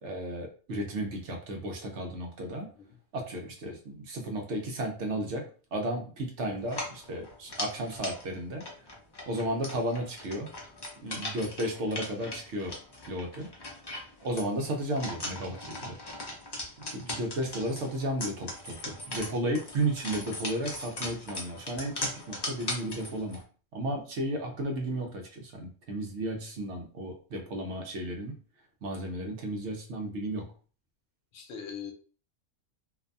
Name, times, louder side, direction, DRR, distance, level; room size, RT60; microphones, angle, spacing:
voice 1, 0.0-2.7 3.1-8.6 9.3-10.5 11.0-12.8 13.0-13.5 14.2-16.0 16.9-23.4 23.7-28.4 28.8-30.5, right 1 dB, 65° right, 2 dB, 0.9 m, -33 dB
sound 1, 6.6-23.4, left 2 dB, 40° left, 0.3 m, -39 dB
voice 2, 11.2-11.5 24.4-24.5 31.3-31.9, left 7 dB, 75° left, 3 dB, 1.0 m, -43 dB
2.6 x 2.2 x 2.5 m, 0.39 s
omnidirectional pair, 1.4 m